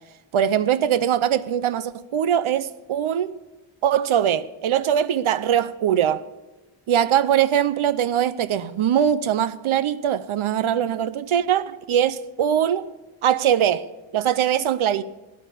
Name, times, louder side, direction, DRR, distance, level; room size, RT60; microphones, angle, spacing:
voice 1, 0.3-3.3 3.8-6.2 6.9-12.9 13.2-13.9 14.1-15.0, right 9 dB, 85° right, 0.7 m, -21 dB
13.0 x 9.4 x 8.3 m
wide cardioid pair, 70°, 48 cm